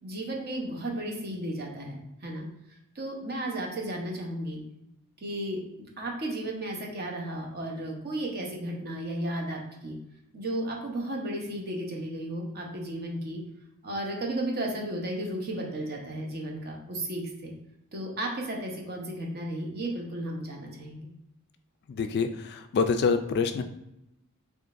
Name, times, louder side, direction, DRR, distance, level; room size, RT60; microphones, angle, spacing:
voice 1, 0.0-2.5 2.9-4.6 5.2-5.6 6.0-10.0 10.3-13.4 13.8-17.5 17.9-21.1, right 1 dB, 45° right, 0 dB, 0.8 m, -34 dB
voice 2, 21.9-23.6, left 5 dB, 50° left, 8 dB, 0.3 m, -26 dB
3.7 x 3.2 x 2.5 m, 0.85 s
head